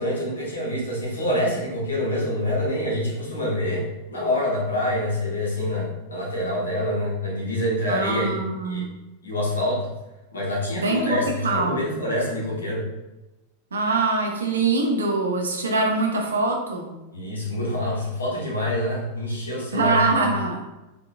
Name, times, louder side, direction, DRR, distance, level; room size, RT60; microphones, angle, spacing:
voice 1, 0.0-8.9 9.2-9.9 10.3-12.8 17.1-20.2, left 1 dB, 75° left, -4 dB, 1.2 m, -26 dB
voice 2, 7.9-8.9 10.7-11.8 13.7-16.9 19.7-20.6, right 3 dB, 70° right, 2 dB, 0.7 m, -23 dB
3.7 x 3.6 x 2.4 m, 1.0 s
figure-of-eight pair, 90°, 0 cm